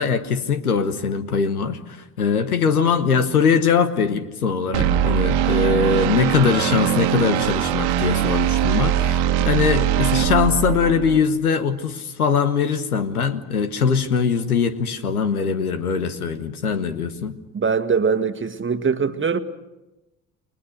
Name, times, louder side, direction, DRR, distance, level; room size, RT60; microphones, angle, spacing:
voice 1, 0.0-17.3, left 6 dB, 85° left, 1.3 m, -21 dB
sound 1, 4.7-11.2, right 11 dB, 65° right, 1.7 m, -21 dB
voice 2, 17.5-19.4, right 5 dB, 25° right, 1.6 m, -22 dB
30.0 x 22.5 x 6.5 m
figure-of-eight pair, 50°, 43 cm